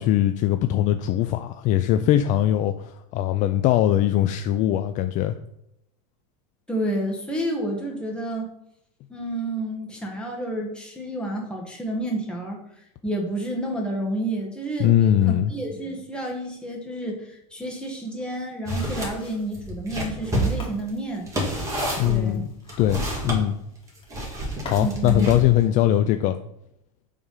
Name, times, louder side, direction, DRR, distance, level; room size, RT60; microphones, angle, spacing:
voice 1, 0.0-5.4 14.8-15.5 22.0-22.5 22.8-23.6 24.6-26.4, left 12 dB, 40° left, 9 dB, 0.4 m, -21 dB
voice 2, 6.7-8.5 9.1-12.6 13.0-21.3 22.1-22.5 24.8-25.3, right 1 dB, 5° left, -1 dB, 1.6 m, -30 dB
sound 1, 17.6-25.0 25.3-25.4, left 2 dB, 25° left, 1.9 m, -45 dB
sound 2, 18.7-19.1 19.5-23.4 24.1-25.6, right 1 dB, 15° right, 1.7 m, -28 dB
4.8 x 3.5 x 5.5 m, 0.80 s
supercardioid pair, 115°, 19 cm